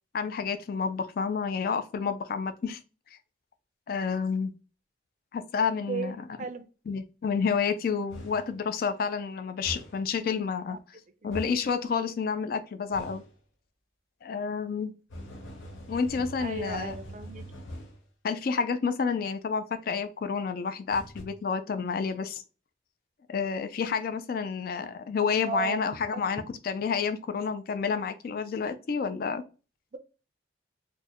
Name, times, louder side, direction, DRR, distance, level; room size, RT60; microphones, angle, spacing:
voice 1, 0.1-2.8 3.9-4.5 5.3-6.3 6.9-10.8 11.2-13.2 14.2-14.9 15.9-17.0 18.2-22.4 23.3-29.4, left 5 dB, 50° left, 0.3 m, -29 dB
voice 2, 5.9-6.7 10.7-10.8 11.2-11.4 16.4-17.4 25.4-25.8 26.1-26.2, right 5 dB, 40° right, 0.4 m, -35 dB
sound 1, 8.1-8.5 9.6-10.1 11.3-11.7 12.9-13.3 15.1-18.0 20.9-21.2, equal, 80° left, 0.7 m, -42 dB
4.2 x 2.1 x 2.9 m
head